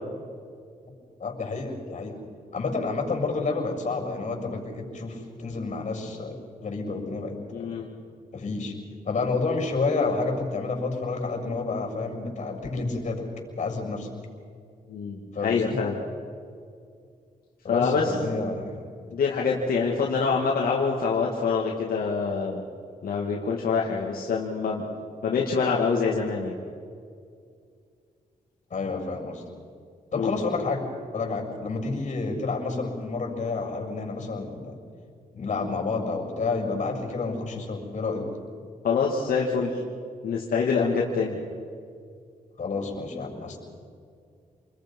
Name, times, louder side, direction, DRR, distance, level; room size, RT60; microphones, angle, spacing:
voice 1, 1.2-2.2 2.5-7.8 8.3-8.8 9.0-13.3 13.6-14.1 15.3-15.8 17.6-18.9 28.7-29.4 30.1-34.8 35.3-38.3 42.6-43.6, left 3 dB, 50° left, 2 dB, 6.9 m, -30 dB
voice 2, 7.5-7.9 14.9-16.0 17.7-18.1 19.1-22.6 23.0-24.8 25.2-26.5 30.2-30.4 38.8-39.8 40.2-41.4, left 5 dB, 80° left, -2 dB, 2.4 m, -25 dB
28.5 x 21.5 x 5.6 m, 2.3 s
cardioid pair, 95°, 15 cm